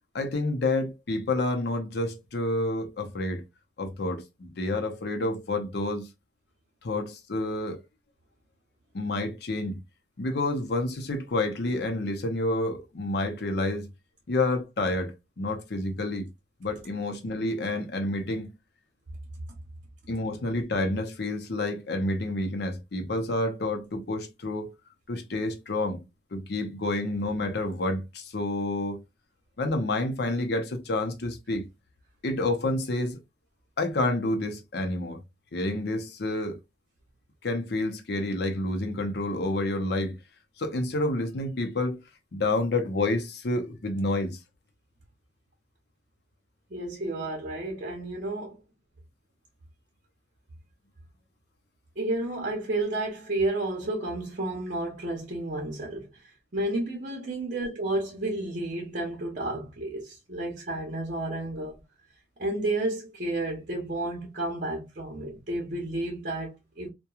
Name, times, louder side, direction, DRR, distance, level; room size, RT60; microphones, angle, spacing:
voice 1, 0.1-3.5 3.8-6.1 6.8-7.8 8.9-9.8 10.2-13.9 14.3-16.3 16.6-18.5 20.1-24.7 25.1-26.0 26.3-29.0 29.6-31.7 32.2-33.2 33.8-35.2 35.5-36.6 37.4-40.2 40.6-42.0 42.3-44.4, left 2 dB, 65° left, 0.6 m, -29 dB
voice 2, 46.7-48.6 52.0-56.1 56.5-61.7 62.4-66.9, right 2 dB, 45° right, 0.8 m, -31 dB
2.9 x 2.2 x 2.3 m
head